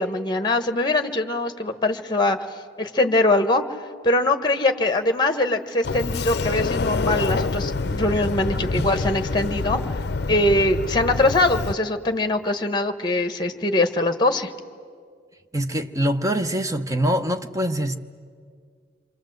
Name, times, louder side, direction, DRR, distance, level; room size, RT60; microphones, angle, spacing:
voice 1, 0.0-2.4 2.8-3.6 4.0-9.8 10.3-14.5, left 2 dB, 25° left, 8 dB, 1.2 m, -22 dB
Sliding door, 5.8-11.7, left 3 dB, 60° left, 0.6 m, -26 dB
voice 2, 15.5-18.0, equal, 20° right, 7 dB, 0.9 m, -24 dB
28.5 x 24.5 x 7.9 m, 2.1 s
head